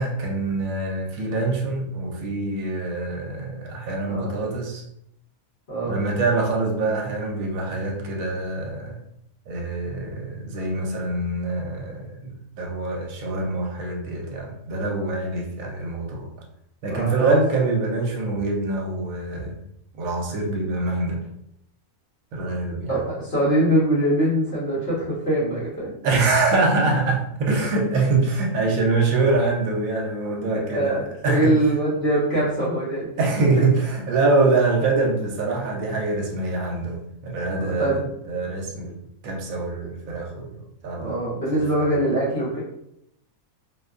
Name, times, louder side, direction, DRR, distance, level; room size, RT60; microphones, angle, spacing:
voice 1, 0.0-4.8 5.8-9.0 9.5-16.3 16.8-19.5 20.0-21.2 22.3-23.0 26.0-31.6 33.2-38.0 38.3-39.0 39.2-40.6 40.8-41.2 41.7-41.9, right 3 dB, 70° right, 1 dB, 1.0 m, -24 dB
voice 2, 5.7-6.0 16.9-17.4 22.9-25.9 30.7-33.1 37.6-38.0 40.9-42.6, right 1 dB, 50° left, -9 dB, 1.0 m, -23 dB
2.6 x 2.2 x 2.3 m, 0.76 s
omnidirectional pair, 1.5 m